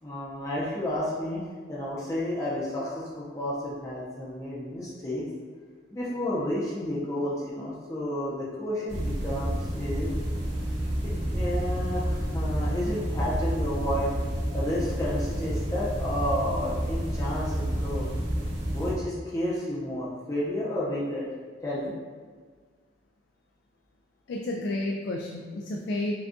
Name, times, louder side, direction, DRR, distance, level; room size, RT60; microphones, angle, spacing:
voice 1, 0.0-1.4 1.7-5.3 5.9-10.1 11.0-14.1 14.5-18.1 18.7-21.3 21.6-21.9, left 1 dB, 20° left, -7 dB, 0.6 m, -31 dB
sound 1, 8.9-18.9, right 1 dB, 80° right, 1.4 m, -29 dB
voice 2, 24.3-26.1, left 1 dB, 70° left, 0 dB, 0.3 m, -31 dB
5.9 x 2.3 x 2.6 m, 1.5 s
head